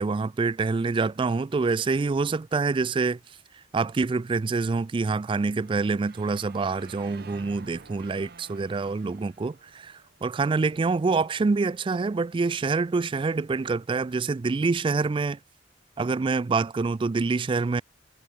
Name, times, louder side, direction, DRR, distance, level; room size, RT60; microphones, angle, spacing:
voice 1, 0.0-3.2 3.7-15.4 16.0-17.8, right 4 dB, 30° right, 0.3 m, -26 dB
sound 1, 5.5-10.6, right 4 dB, 60° right, 1.2 m, -50 dB
head